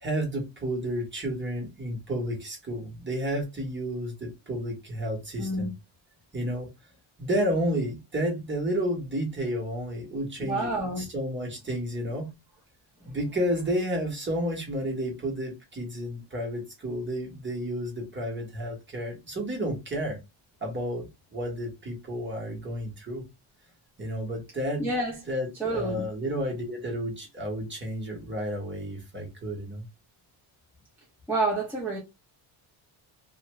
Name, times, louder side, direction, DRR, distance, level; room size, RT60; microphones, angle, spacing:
voice 1, 0.0-5.7 6.3-6.7 7.2-10.7 11.0-12.3 13.1-20.2 20.6-23.2 24.0-24.9 25.3-29.8, equal, 25° right, 1.2 m, -31 dB
voice 2, 5.4-5.7 10.4-11.1 13.0-13.2 24.8-25.2 25.6-26.1 31.3-32.0, right 2 dB, 5° right, 0.9 m, -29 dB
2.7 x 2.5 x 3.1 m
cardioid pair, 150°, 50 cm